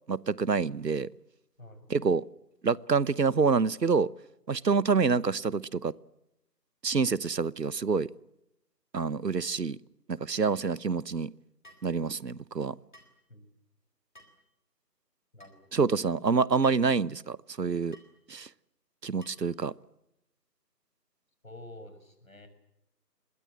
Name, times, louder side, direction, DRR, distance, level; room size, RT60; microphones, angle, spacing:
voice 1, 0.1-1.1 1.9-2.2 2.6-4.1 4.5-5.9 6.8-8.1 8.9-9.8 10.1-11.3 11.8-12.8 15.7-18.0 18.3-18.5 19.0-19.7, right 5 dB, 80° right, 1.0 m, -27 dB
voice 2, 1.6-1.9 13.3-13.5 15.3-15.8 21.4-22.5, left 1 dB, 55° left, 6.4 m, -49 dB
sound 1, 10.4-10.7 11.6-11.9 12.9-13.2 14.1-14.4 15.4-15.6 16.6-16.9 17.9-18.1 19.2-19.5, equal, 30° left, 3.8 m, -55 dB
29.0 x 22.5 x 7.7 m
figure-of-eight pair, 180°, 48 cm